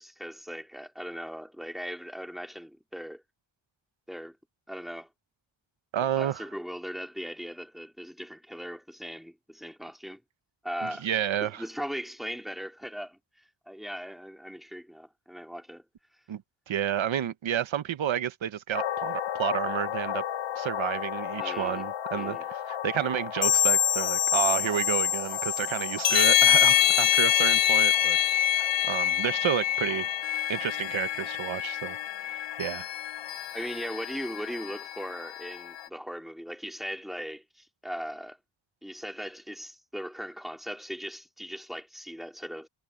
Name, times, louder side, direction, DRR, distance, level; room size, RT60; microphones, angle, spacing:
voice 1, 0.0-3.2 4.1-4.4 4.7-5.1 6.2-10.2 10.6-11.1 11.4-13.2 13.7-15.9 21.4-21.8 22.1-22.4 33.5-38.4 38.8-42.7, equal, ahead, 3.7 m, -39 dB
voice 2, 5.9-6.4 10.8-11.6 16.3-16.4 16.7-20.2 20.6-28.2 28.6-30.1 30.5-32.0 32.6-32.9, right 10 dB, 85° right, 0.9 m, -30 dB
sound 1, 18.7-35.8, left 11 dB, 70° left, 0.9 m, -27 dB
wide cardioid pair, 175°, 46 cm